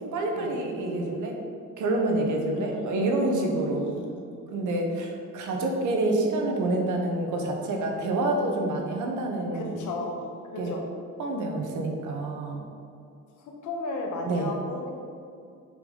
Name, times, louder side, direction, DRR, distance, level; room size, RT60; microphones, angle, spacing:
voice 1, 0.0-1.3 1.8-3.9 4.5-9.8 10.6-10.7 11.2-12.6 14.3-14.5, right 2 dB, 80° right, 1 dB, 1.2 m, -27 dB
voice 2, 2.5-4.4 9.5-10.1 10.4-10.8 13.4-14.9, left 2 dB, 80° left, 0 dB, 1.3 m, -36 dB
6.8 x 5.2 x 4.0 m, 2.4 s
cardioid pair, 90°, 30 cm